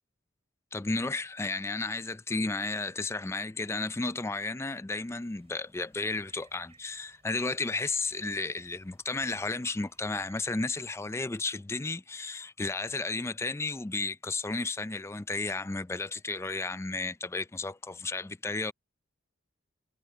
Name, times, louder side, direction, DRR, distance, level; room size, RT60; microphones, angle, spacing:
voice 1, 0.7-18.7, left 3 dB, 15° left, 0.4 m, -33 dB
sound 1, 4.9-11.0, right 4 dB, 30° right, 6.1 m, -62 dB
head